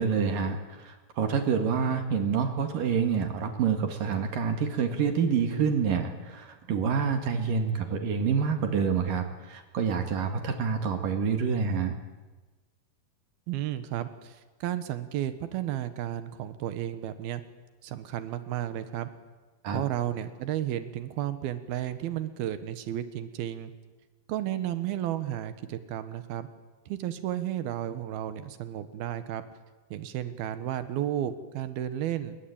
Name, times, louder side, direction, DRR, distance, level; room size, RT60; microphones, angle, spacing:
voice 1, 0.0-11.9 19.6-19.8, right 6 dB, 70° right, 6 dB, 3.7 m, -27 dB
voice 2, 13.5-17.4 17.8-19.1 19.7-23.7 24.3-26.5 26.9-29.4 29.9-32.4, right 12 dB, 90° right, 11 dB, 3.2 m, -33 dB
28.0 x 22.5 x 8.8 m, 1.2 s
omnidirectional pair, 4.2 m